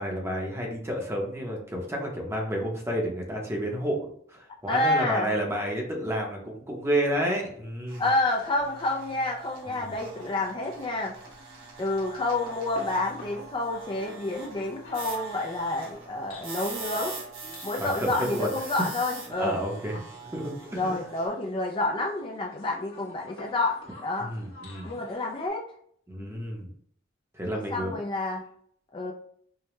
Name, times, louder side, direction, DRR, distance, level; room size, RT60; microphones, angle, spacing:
voice 1, 0.0-8.0 9.7-9.9 17.8-18.5 19.4-20.0 20.3-21.0 24.2-24.9 26.1-26.7 27.3-27.9, equal, 15° right, 0 dB, 0.7 m, -30 dB
voice 2, 4.7-5.3 8.0-11.2 11.8-17.2 17.6-19.6 20.7-24.3 24.8-25.7 26.2-26.4 27.5-28.4 28.9-29.1, left 2 dB, 25° left, 0 dB, 0.4 m, -29 dB
sound 1, 7.9-21.3, right 4 dB, 80° right, 1.1 m, -43 dB
sound 2, 8.0-25.5, left 2 dB, 85° left, 1.2 m, -50 dB
4.8 x 2.1 x 3.0 m, 0.63 s
head